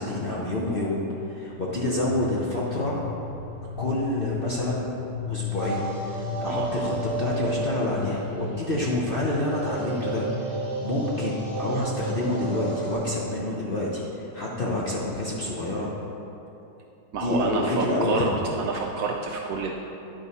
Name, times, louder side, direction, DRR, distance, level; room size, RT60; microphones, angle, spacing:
voice 1, 0.0-3.0 3.8-4.9 5.3-15.9 17.1-18.5, left 1 dB, 50° left, -5 dB, 0.7 m, -28 dB
sound 1, 1.5-9.3, left 7 dB, 30° right, 1.1 m, -35 dB
sound 2, 5.6-13.0, right 3 dB, 80° left, 2.6 m, -32 dB
voice 2, 17.1-19.7, right 4 dB, 70° right, 1 dB, 0.8 m, -28 dB
10.0 x 4.6 x 4.1 m, 2.9 s
omnidirectional pair, 1.8 m